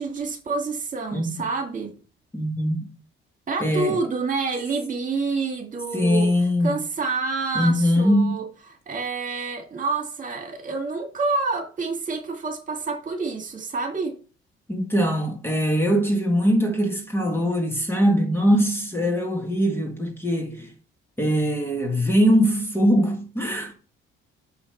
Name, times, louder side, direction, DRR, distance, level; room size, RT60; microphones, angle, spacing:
voice 1, 0.0-1.9 3.5-6.3 6.6-8.5 8.9-14.1, right 4 dB, 40° right, 2.2 m, -28 dB
voice 2, 1.1-1.4 2.3-2.9 3.6-4.0 5.9-6.8 7.5-8.4 14.7-20.7 21.2-23.7, equal, 10° left, 1.7 m, -22 dB
6.2 x 5.6 x 5.7 m
cardioid pair, 120°, 21 cm